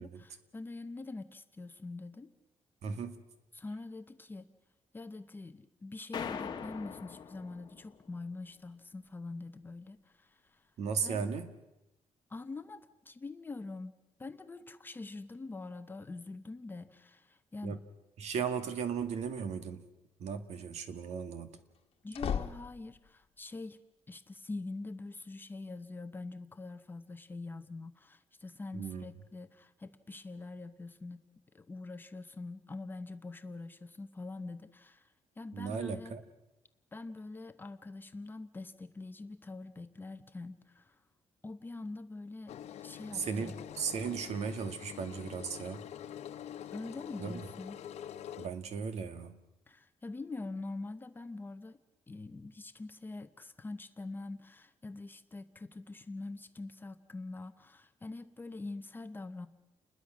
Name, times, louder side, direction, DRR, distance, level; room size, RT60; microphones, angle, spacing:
voice 1, 0.0-2.3 3.5-4.5 4.9-10.7 11.0-11.3 12.3-17.8 22.0-23.8 24.1-31.3 31.5-36.1 36.9-41.0 41.4-42.6 42.8-43.6 46.7-47.8 49.7-51.8 52.1-59.5, left 3 dB, 20° left, 9 dB, 0.8 m, -44 dB
voice 2, 2.8-3.2 10.8-11.5 17.6-17.8 18.2-19.9 20.2-21.5 28.7-29.1 35.5-36.2 43.1-45.8 47.2-47.5 48.4-49.4, right 6 dB, 85° right, 9 dB, 1.9 m, -36 dB
sound 1, 6.1-8.1, left 7 dB, 40° left, 1.4 m, -41 dB
sound 2, 18.9-19.5 21.7-23.2, left 8 dB, 60° left, 1.5 m, -38 dB
Engine, 42.5-48.5, left 10 dB, 80° left, 0.9 m, -46 dB
29.5 x 21.0 x 6.2 m, 0.96 s
wide cardioid pair, 170°, 11 cm